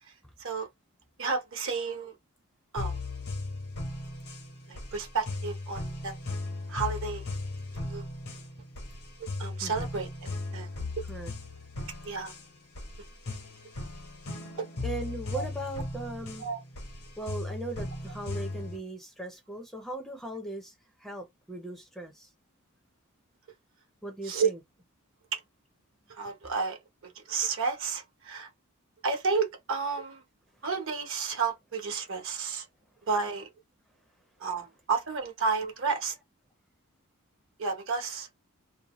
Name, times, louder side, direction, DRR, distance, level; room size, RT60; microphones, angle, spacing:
voice 1, 1.2-2.1 2.7-3.0 4.7-6.1 6.7-7.2 7.8-8.0 9.4-10.7 12.0-12.3 15.3-15.4 16.4-16.6 24.3-24.5 25.3-25.4 26.1-28.5 29.0-30.2 30.6-32.7 33.1-33.5 34.4-36.2 37.6-38.3, right 5 dB, 60° right, 0.9 m, -31 dB
sound 1, 2.8-18.8, left 2 dB, 80° left, 1.1 m, -37 dB
voice 2, 14.8-16.5 17.2-22.3 24.0-24.6, right 2 dB, ahead, 0.5 m, -39 dB
2.7 x 2.1 x 2.9 m
head